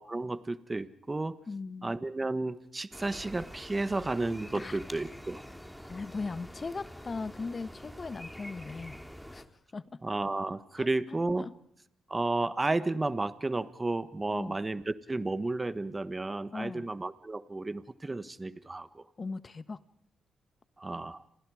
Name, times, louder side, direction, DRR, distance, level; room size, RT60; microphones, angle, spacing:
voice 1, 0.0-1.4 1.8-5.4 10.0-11.5 12.1-19.0 20.8-21.2, right 2 dB, 25° right, 1.4 m, -32 dB
voice 2, 1.5-1.9 4.5-4.8 5.9-9.0 9.3-9.4 9.7-10.0 10.8-11.5 14.3-14.6 16.5-16.9 19.2-19.8, left 4 dB, 40° left, 1.3 m, -39 dB
sound 1, 2.9-9.4, equal, 5° left, 2.8 m, -46 dB
30.0 x 27.0 x 5.0 m
cardioid pair, 65°, 0 cm